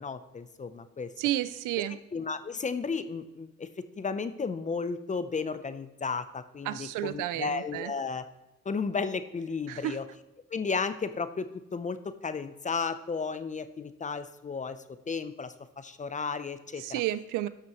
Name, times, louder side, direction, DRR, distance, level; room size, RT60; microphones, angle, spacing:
voice 1, 0.0-1.1 1.9-3.7 4.0-8.2 8.7-10.0 10.5-17.0, left 5 dB, 25° left, 12 dB, 0.6 m, -34 dB
voice 2, 1.2-2.0 6.7-7.9 9.7-10.0 16.8-17.5, right 14 dB, 90° right, 15 dB, 0.5 m, -31 dB
12.5 x 6.2 x 3.0 m, 0.94 s
cardioid pair, 90°, 30 cm